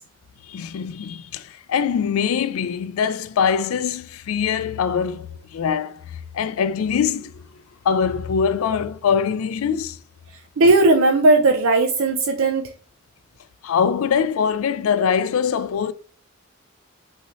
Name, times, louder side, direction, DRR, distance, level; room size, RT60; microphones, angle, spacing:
voice 1, 0.5-6.1 6.3-7.4 7.8-10.0 13.6-15.9, left 7 dB, 80° left, 0.3 m, -23 dB
voice 2, 10.6-12.7, right 2 dB, 75° right, 0.5 m, -16 dB
5.6 x 2.8 x 3.0 m
head